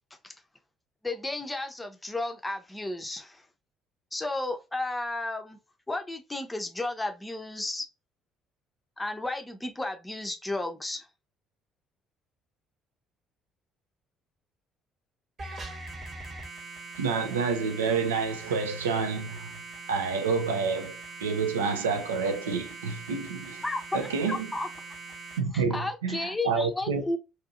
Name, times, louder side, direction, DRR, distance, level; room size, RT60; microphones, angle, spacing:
voice 1, 1.0-3.5 4.1-5.6 5.9-7.9 9.0-11.1 23.6-24.7 25.5-27.2, left 2 dB, 15° left, 0.7 m, -33 dB
sound 1, 15.4-25.4, right 3 dB, 45° right, 1.1 m, -42 dB
voice 2, 17.0-19.5 19.9-23.6 23.9-24.5 25.4-27.0, right 5 dB, 75° right, 0.4 m, -29 dB
2.7 x 2.6 x 2.4 m
figure-of-eight pair, 50°, 0 cm